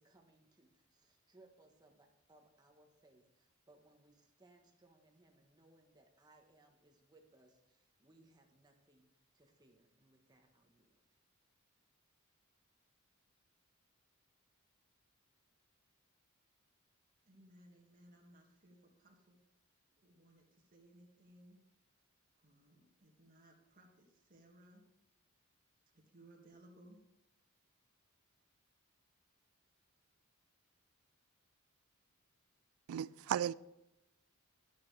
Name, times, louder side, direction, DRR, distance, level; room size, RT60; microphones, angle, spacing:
voice 1, 0.0-11.0, right 2 dB, 20° right, 1.2 m, -67 dB
voice 2, 17.2-19.4 19.9-21.6 22.4-24.8 25.9-27.0 33.1-33.5, right 1 dB, 40° right, 2.0 m, -62 dB
voice 3, 32.9-33.5, right 10 dB, 75° right, 0.3 m, -35 dB
12.0 x 10.5 x 3.3 m
head